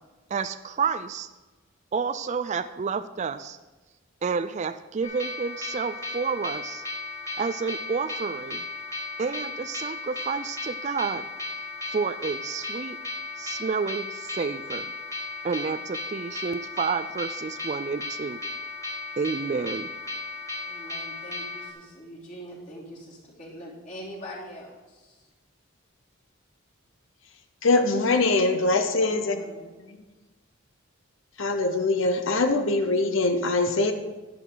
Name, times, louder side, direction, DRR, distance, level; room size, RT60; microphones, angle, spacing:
voice 1, 0.3-1.3 1.9-3.6 4.2-6.8 7.4-8.7 9.2-11.3 11.9-13.0 13.4-14.9 15.4-18.4 19.2-19.9, right 5 dB, 35° right, 11 dB, 0.3 m, -30 dB
sound 1, 5.0-21.7, left 3 dB, 15° left, 1.6 m, -35 dB
voice 2, 20.6-25.2 29.0-29.8, equal, 35° left, -5 dB, 3.2 m, -43 dB
voice 3, 27.6-29.4 31.4-33.9, left 2 dB, 65° left, 7 dB, 0.8 m, -23 dB
11.0 x 11.0 x 3.9 m, 1.2 s
head